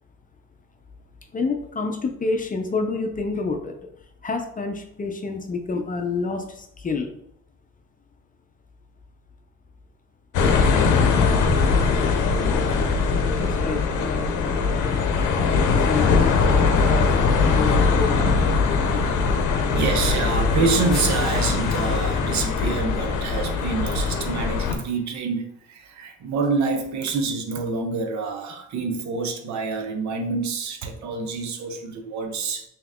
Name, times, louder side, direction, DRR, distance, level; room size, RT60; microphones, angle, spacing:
voice 1, 1.3-3.8 4.2-7.1 12.8-12.9 13.4-14.6 15.7-17.1 17.5-18.4 18.9-19.1, left 4 dB, 25° left, 5 dB, 0.5 m, -29 dB
sound 1, 10.3-24.7, left 4 dB, 85° left, 0.6 m, -21 dB
voice 2, 19.7-32.6, right 4 dB, 65° right, 5 dB, 0.7 m, -27 dB
sound 2, 20.9-25.1 26.4-26.5, left 1 dB, ahead, 1.0 m, -45 dB
3.2 x 2.9 x 3.6 m, 0.73 s
cardioid pair, 90°, 30 cm